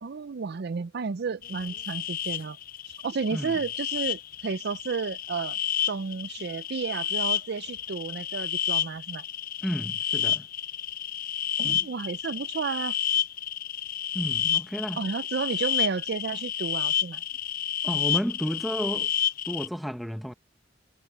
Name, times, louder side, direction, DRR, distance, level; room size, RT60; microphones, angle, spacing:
voice 1, 0.0-2.6 3.0-5.6 5.8-9.2 11.6-12.9 15.0-17.2, right 5 dB, 55° right, 0.5 m, -32 dB
sound 1, 1.4-19.7, left 9 dB, 50° left, 0.5 m, -30 dB
voice 2, 9.6-10.5 11.6-11.9 14.1-15.0 17.8-19.1 19.5-20.3, equal, ahead, 0.9 m, -32 dB
head